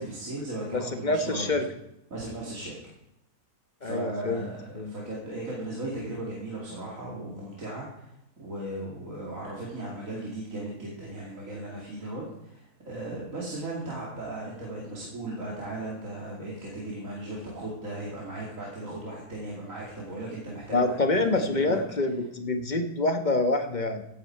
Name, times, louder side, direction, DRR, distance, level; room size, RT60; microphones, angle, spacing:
voice 1, 0.0-1.5 2.1-2.8 3.8-21.8, right 1 dB, 55° right, -4 dB, 2.9 m, -37 dB
voice 2, 0.7-1.7 3.8-4.9 20.7-24.0, left 2 dB, 30° left, 7 dB, 1.1 m, -27 dB
16.0 x 9.4 x 4.5 m, 0.84 s
omnidirectional pair, 1.7 m